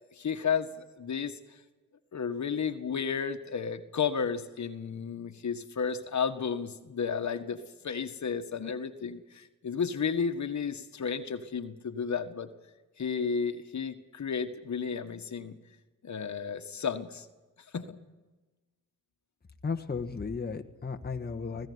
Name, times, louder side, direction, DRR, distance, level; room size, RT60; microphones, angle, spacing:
voice 1, 0.1-1.3 2.1-7.6 7.8-12.5 13.0-15.6 16.0-17.3 17.7-18.0, left 6 dB, 55° left, 9 dB, 1.7 m, -32 dB
voice 2, 19.6-21.7, left 5 dB, 30° left, 5 dB, 1.4 m, -34 dB
20.5 x 16.0 x 9.6 m, 1.2 s
cardioid pair, 75°, 35 cm